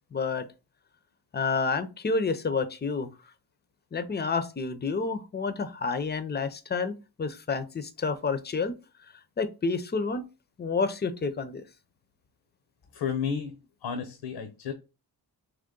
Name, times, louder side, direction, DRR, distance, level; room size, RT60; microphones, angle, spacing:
voice 1, 0.1-0.5 1.3-3.1 3.9-8.7 9.4-10.2 10.6-11.6, left 4 dB, 25° left, 0.5 m, -29 dB
voice 2, 12.9-13.5 13.8-14.7, left 7 dB, 85° left, 0.8 m, -32 dB
3.8 x 3.0 x 3.6 m
wide cardioid pair, 140°, 40 cm